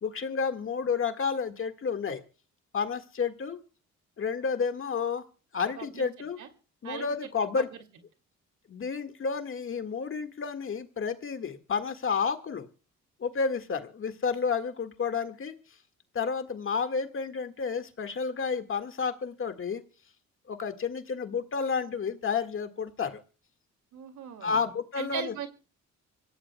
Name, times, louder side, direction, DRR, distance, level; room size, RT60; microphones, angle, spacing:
voice 1, 0.0-2.2 2.7-3.6 4.2-5.2 5.5-6.4 6.8-7.7 8.7-12.7 13.2-15.5 16.1-19.8 20.5-23.2 24.4-25.3, left 5 dB, 45° left, 7 dB, 1.8 m, -31 dB
voice 2, 5.8-6.1 6.4-6.5 6.8-7.8 23.9-24.6 25.0-25.5, right 7 dB, 75° right, 8 dB, 2.5 m, -39 dB
25.5 x 17.0 x 2.2 m, 0.37 s
cardioid pair, 90°, 30 cm